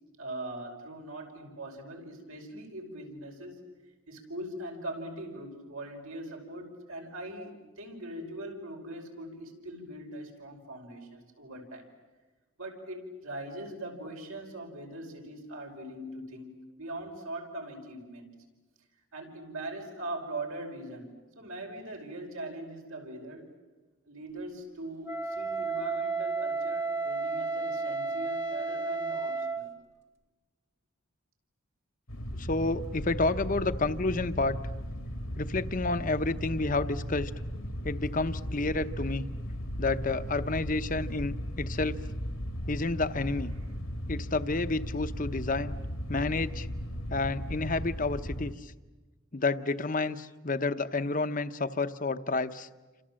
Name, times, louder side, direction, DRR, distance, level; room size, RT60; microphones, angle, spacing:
voice 1, 0.2-3.6 4.1-11.8 12.6-18.3 19.1-23.5 24.1-29.7 42.6-42.7, right 1 dB, 85° right, 2 dB, 5.5 m, -41 dB
Wind instrument woodwind instrument, 25.1-29.7, right 4 dB, 15° right, 1.2 m, -32 dB
sound 1, 32.1-48.5, equal, 85° left, 2.4 m, -36 dB
voice 2, 32.3-34.6 35.4-37.3 37.8-39.3 39.8-42.0 42.7-43.5 44.1-45.8 46.1-46.7 47.1-48.7 49.3-52.7, left 3 dB, 40° left, 11 dB, 0.9 m, -30 dB
29.5 x 26.5 x 7.6 m, 1.2 s
head